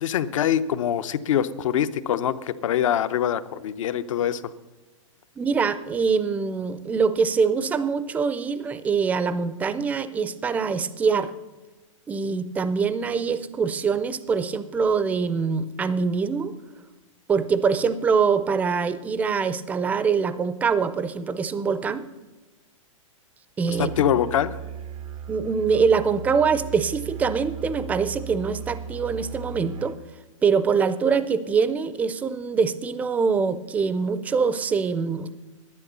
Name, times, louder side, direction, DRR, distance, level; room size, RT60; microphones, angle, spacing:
voice 1, 0.0-4.4 23.8-24.6, left 10 dB, 70° left, 12 dB, 0.7 m, -24 dB
voice 2, 5.4-11.3 12.1-16.5 17.3-22.0 23.6-23.9 25.3-30.0 30.4-35.3, right 5 dB, 10° right, 13 dB, 0.4 m, -24 dB
Musical instrument, 23.7-30.0, right 6 dB, 85° right, 0.7 m, -37 dB
10.5 x 10.0 x 6.7 m, 1.2 s
hypercardioid pair, 150°, 17 cm